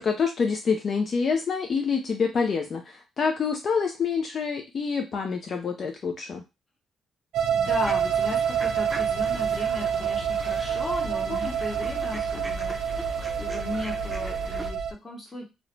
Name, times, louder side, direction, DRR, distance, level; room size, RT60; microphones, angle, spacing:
voice 1, 0.0-6.4 11.3-11.5 12.3-12.4, left 5 dB, 50° left, 4 dB, 0.4 m, -27 dB
sound 1, 7.3-14.9, right 7 dB, 75° right, 0.4 m, -27 dB
voice 2, 7.5-15.4, left 2 dB, 20° left, -1 dB, 1.0 m, -36 dB
sound 2, 7.6-14.7, right 1 dB, 10° right, 0.5 m, -41 dB
2.4 x 2.1 x 3.0 m, 0.26 s
cardioid pair, 90°, 0 cm